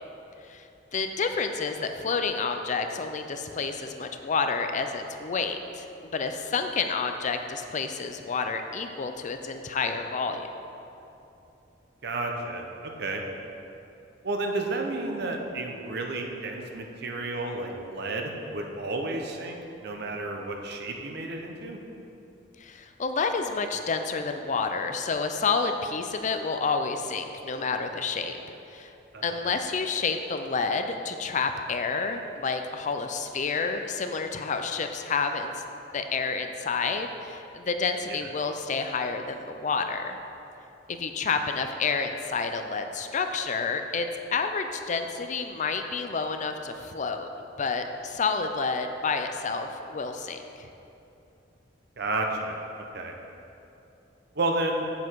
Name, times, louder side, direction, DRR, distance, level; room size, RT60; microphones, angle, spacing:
voice 1, 0.9-5.9 6.1-10.5 22.6-28.4 28.7-28.9 29.2-35.5 35.9-40.2 40.9-47.3 47.6-50.7, left 4 dB, 40° left, 6 dB, 0.5 m, -29 dB
voice 2, 12.0-12.6 13.0-13.2 14.2-21.8 29.1-29.5 38.1-38.2 52.0-52.6 52.9-53.1 54.3-54.9, right 2 dB, 60° right, 2 dB, 0.9 m, -31 dB
8.0 x 7.2 x 4.7 m, 2.9 s
head